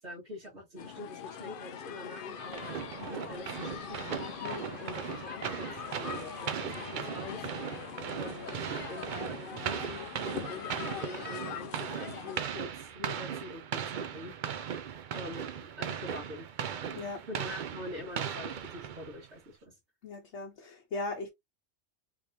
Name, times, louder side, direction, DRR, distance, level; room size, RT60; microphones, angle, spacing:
voice 1, 0.0-5.7 6.0-7.8 8.1-14.8 15.1-16.5 17.3-19.7, left 2 dB, 75° right, 1.9 m, -45 dB
sound 1, 0.8-12.4, left 8 dB, 60° left, 0.6 m, -42 dB
sound 2, 2.5-19.3, right 8 dB, 55° right, 0.6 m, -38 dB
voice 2, 20.0-21.3, left 3 dB, 80° left, 1.1 m, -38 dB
3.6 x 3.1 x 2.6 m
omnidirectional pair, 1.2 m